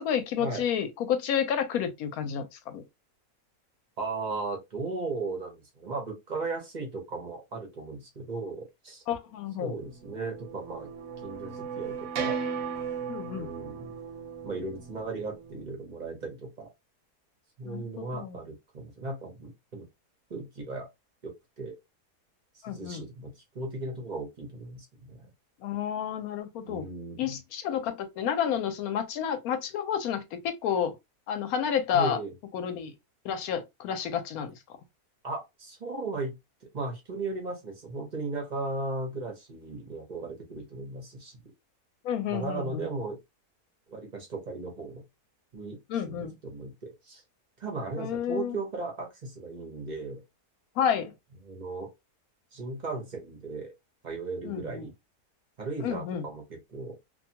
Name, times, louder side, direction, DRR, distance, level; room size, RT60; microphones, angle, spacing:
voice 1, 0.0-2.8 9.1-9.7 13.1-13.5 17.6-18.4 22.6-23.0 25.6-26.9 27.2-31.0 31.3-32.2 32.5-32.9 33.2-34.5 42.0-42.9 45.9-46.4 48.0-48.6 50.8-51.1 54.4-54.9 55.8-56.2, left 8 dB, 70° left, 1.0 m, -30 dB
voice 2, 4.0-9.0 9.6-10.9 11.2-12.4 13.3-13.9 14.4-16.7 17.6-19.9 20.3-20.9 21.2-21.7 22.7-25.3 26.6-27.4 31.9-32.3 35.2-36.4 36.7-41.4 42.3-43.2 43.9-45.0 45.5-45.8 46.1-47.2 47.6-50.2 51.4-51.9 52.5-53.7 54.0-54.9 55.6-57.0, right 3 dB, 40° right, 0.6 m, -36 dB
sound 1, 9.9-15.6, right 6 dB, 70° right, 0.9 m, -37 dB
2.7 x 2.2 x 2.7 m
omnidirectional pair, 1.7 m